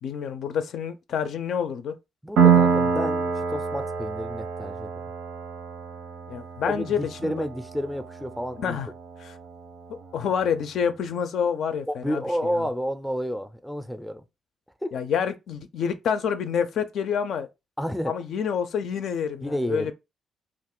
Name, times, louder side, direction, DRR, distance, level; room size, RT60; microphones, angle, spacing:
voice 1, 0.0-1.9 6.3-7.5 8.6-8.9 9.2-9.4 10.1-12.5 14.9-17.5 18.1-19.9, left 7 dB, 70° left, 0.4 m, -28 dB
voice 2, 2.2-4.9 6.7-8.8 11.9-14.2 14.8-14.9 17.8-18.1 19.4-19.9, equal, ahead, 0.4 m, -30 dB
Piano, 2.4-9.8, right 6 dB, 80° right, 0.7 m, -26 dB
2.4 x 2.4 x 3.6 m
cardioid pair, 90°, 0 cm